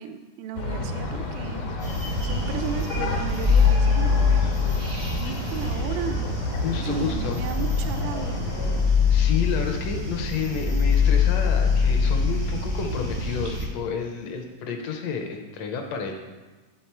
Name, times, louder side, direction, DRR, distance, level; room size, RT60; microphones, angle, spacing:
voice 1, 0.0-1.6 2.2-4.5 5.1-6.3 6.7-8.5, right 7 dB, 80° right, 7 dB, 1.9 m, -35 dB
sound 1, 0.5-8.8, left 3 dB, 90° left, 2.6 m, -31 dB
sound 2, 1.8-13.7, left 5 dB, 45° right, 0.6 m, -24 dB
voice 2, 6.5-7.4 9.1-16.1, left 6 dB, 75° left, 3 dB, 1.6 m, -30 dB
10.0 x 3.7 x 4.4 m, 1.3 s
omnidirectional pair, 3.5 m